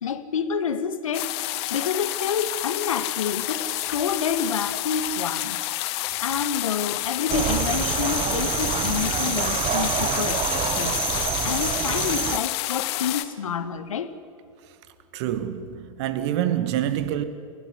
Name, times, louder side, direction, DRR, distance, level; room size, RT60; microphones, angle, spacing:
voice 1, 0.0-14.2, left 7 dB, 70° left, 1.8 m, -29 dB
sound 1, 1.1-13.2, left 16 dB, 50° left, 1.6 m, -29 dB
sound 2, 7.3-12.4, right 11 dB, 30° right, 1.1 m, -27 dB
voice 2, 15.1-17.2, right 11 dB, 55° right, 2.1 m, -26 dB
30.0 x 17.0 x 9.8 m
figure-of-eight pair, 90°, 17 cm